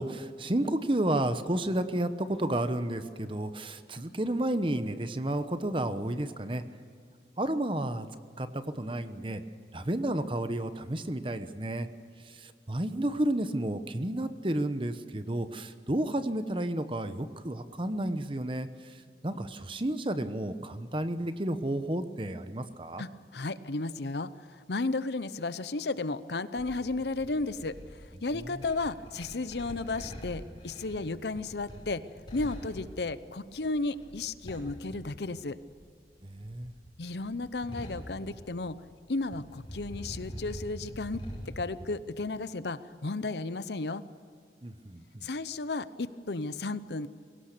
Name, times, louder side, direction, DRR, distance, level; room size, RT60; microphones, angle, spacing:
voice 1, 0.0-6.6 7.4-8.1 8.4-9.4 9.7-11.9 12.2-23.0 28.5-28.6 36.2-36.7 44.6-45.3, right 1 dB, 30° right, 10 dB, 1.0 m, -31 dB
voice 2, 23.0-32.0 32.3-35.6 37.0-38.8 39.1-41.2 41.6-44.0 45.2-47.1, left 3 dB, 70° left, 14 dB, 0.8 m, -34 dB
sound 1, 26.6-35.8 36.1-39.0 39.2-41.7, equal, 25° left, 5.7 m, -44 dB
22.0 x 18.0 x 6.8 m, 2.2 s
head